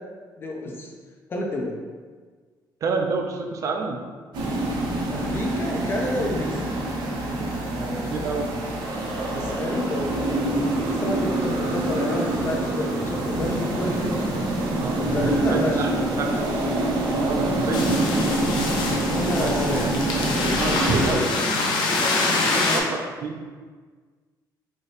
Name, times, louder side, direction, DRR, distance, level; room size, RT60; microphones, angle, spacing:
voice 1, 0.4-0.9 1.3-1.8 5.1-6.9 9.3-14.2 14.5-14.8 15.1-15.9 19.0-19.8 20.3-22.9, left 1 dB, 30° left, 0 dB, 0.5 m, -30 dB
voice 2, 2.8-4.0 7.7-8.6 14.8-15.9 16.2-16.4 17.2-18.0 19.3-20.3 20.6-21.5 22.7-23.4, right 4 dB, 45° right, 3 dB, 0.4 m, -28 dB
sound 1, 4.3-21.2, right 2 dB, 75° right, 0.7 m, -26 dB
sound 2, 17.7-22.8, left 3 dB, 80° left, 0.6 m, -25 dB
4.1 x 2.7 x 3.2 m, 1.5 s
cardioid pair, 165°, 8 cm